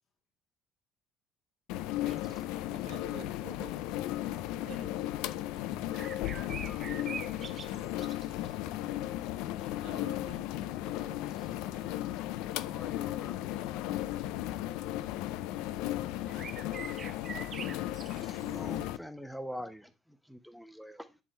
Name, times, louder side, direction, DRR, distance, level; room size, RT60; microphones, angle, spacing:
sound 1, 1.7-19.0, left 14 dB, 85° left, 0.4 m, -35 dB
sound 2, 2.0-2.4 4.4-4.5 5.3-5.4 5.9-8.7 9.4-9.8 10.3-10.4 11.3-11.8 12.4-12.7 14.6-14.8 15.9-16.0 16.2-18.8, right 6 dB, 45° right, 0.5 m, -46 dB
voice 1, 2.7-3.8 4.6-5.0 9.8-10.5 10.8-11.2 11.7-11.9, right 11 dB, 75° right, 1.1 m, -50 dB
voice 2, 6.0-8.4 12.6-13.5, left 5 dB, 55° left, 2.9 m, -54 dB
voice 3, 18.2-21.2, equal, ahead, 0.8 m, -44 dB
10.5 x 3.7 x 4.4 m
cardioid pair, 95°, 0 cm